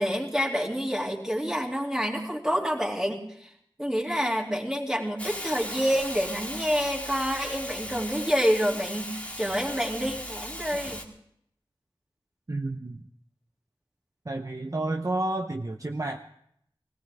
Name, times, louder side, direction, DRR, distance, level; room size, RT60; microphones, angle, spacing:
voice 1, 0.0-3.5 3.8-11.1, equal, 5° right, -2 dB, 2.7 m, -28 dB
Hiss, 5.2-11.0, left 1 dB, 15° left, 2.0 m, -37 dB
voice 2, 12.5-13.0 14.3-16.2, right 2 dB, 35° right, 4 dB, 0.7 m, -30 dB
21.0 x 16.5 x 3.5 m, 0.72 s
wide cardioid pair, 50°, 9 cm